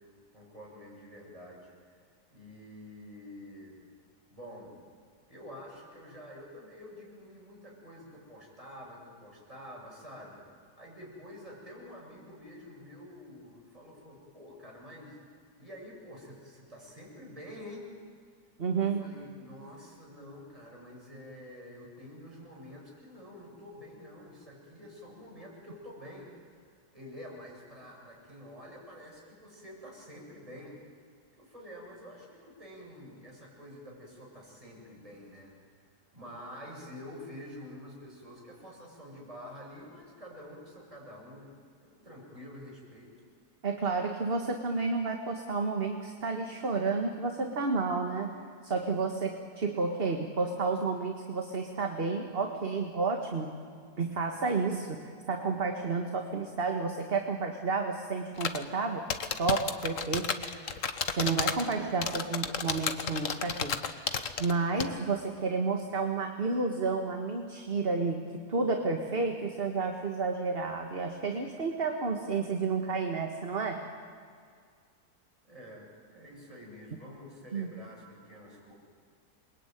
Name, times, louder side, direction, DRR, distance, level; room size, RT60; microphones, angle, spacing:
voice 1, 0.3-3.8 4.3-4.7 5.3-10.4 10.7-15.2 15.6-17.9 18.7-26.7 26.9-30.8 31.3-35.5 36.1-43.1 75.4-78.7, left 1 dB, 20° right, -3 dB, 8.0 m, -48 dB
voice 2, 18.6-19.1 43.6-48.4 48.6-53.5 54.0-55.0 55.3-59.1 59.4-60.6 61.2-63.8 64.4-73.9 77.5-77.7, right 4 dB, 35° right, 4 dB, 1.8 m, -31 dB
sound 1, 58.4-58.6 59.1-61.7 62.0-64.5 64.8-64.9, left 6 dB, 55° left, 1.5 m, -31 dB
28.5 x 22.5 x 9.3 m, 2.1 s
omnidirectional pair, 1.7 m